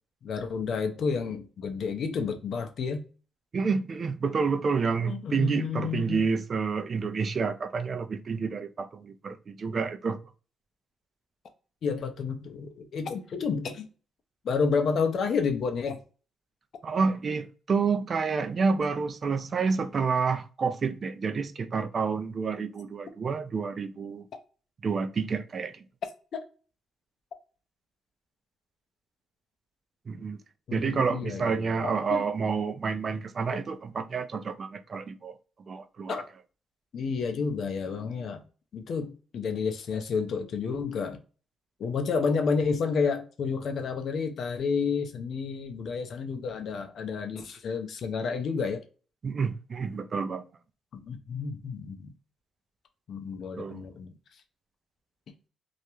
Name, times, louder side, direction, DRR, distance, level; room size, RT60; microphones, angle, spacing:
voice 1, 0.2-3.0 5.0-6.2 11.8-13.9 14.4-16.0 26.3-26.4 30.7-32.2 33.5-33.6 36.1-36.2 36.9-38.4 38.7-41.2 41.8-48.8 50.9-52.1 53.1-54.1, left 5 dB, 60° left, 0.4 m, -30 dB
voice 2, 3.5-10.2 16.8-24.2 24.8-25.8 30.1-30.4 30.7-35.3 35.7-36.2 49.2-50.4 53.6-53.9, right 5 dB, 45° right, 0.3 m, -29 dB
2.3 x 2.1 x 2.8 m
cardioid pair, 90°, 0 cm